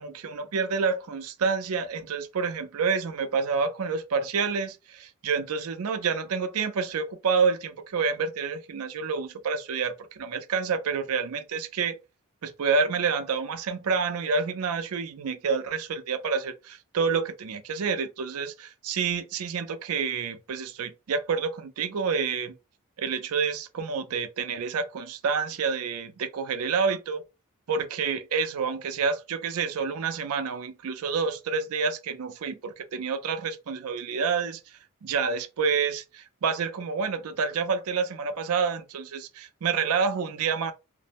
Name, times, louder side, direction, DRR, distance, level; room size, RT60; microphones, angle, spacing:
voice 1, 0.0-12.0 12.4-22.6 23.0-27.2 27.7-34.6 35.0-40.7, right 5 dB, 80° right, 0.5 m, -28 dB
2.5 x 2.0 x 2.9 m
head